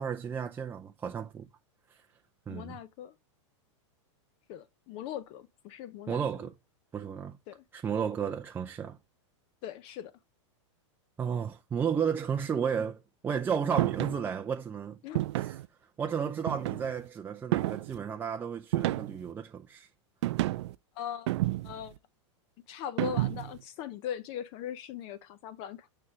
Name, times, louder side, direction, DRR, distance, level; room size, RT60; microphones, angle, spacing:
voice 1, 0.0-1.5 1.9-2.0 2.5-2.8 6.1-6.5 6.9-7.4 7.7-9.0 11.2-15.0 15.3-15.6 16.0-19.9, right 7 dB, 15° right, 0.5 m, -33 dB
voice 2, 2.5-3.1 4.5-6.2 7.5-7.6 9.6-10.1 15.0-15.2 20.9-21.3 21.6-21.9 22.7-25.9, left 10 dB, 35° left, 0.6 m, -40 dB
sound 1, 13.8-14.2 15.1-15.7 16.5-17.0 17.5-18.0 18.7-19.3 20.2-20.7 21.3-21.9 23.0-23.6, right 16 dB, 65° right, 0.5 m, -30 dB
9.6 x 3.4 x 6.2 m
supercardioid pair, 155°, 16 cm